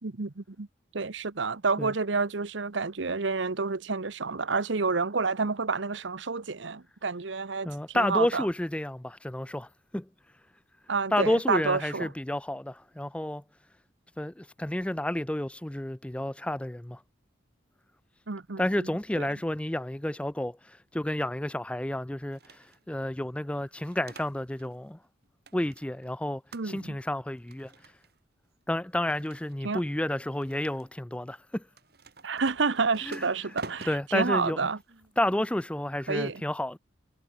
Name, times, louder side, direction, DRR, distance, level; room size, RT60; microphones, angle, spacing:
voice 1, 0.0-0.7 0.9-8.5 10.9-12.1 18.3-18.9 19.2-19.3 26.5-27.0 29.6-29.8 32.2-34.8 36.1-36.4, right 4 dB, 70° right, 1.0 m, -29 dB
voice 2, 7.6-10.1 11.1-13.4 14.2-17.0 18.6-25.0 25.5-27.7 28.7-31.6 33.1-33.2 33.9-34.7 35.2-36.8, left 1 dB, 5° left, 0.4 m, -30 dB
sound 1, 22.3-22.9 23.6-24.8 25.0-26.1 26.5-27.0 27.4-28.2 28.9-29.8 30.3-30.9 31.7-35.4, right 3 dB, 55° right, 4.1 m, -49 dB
head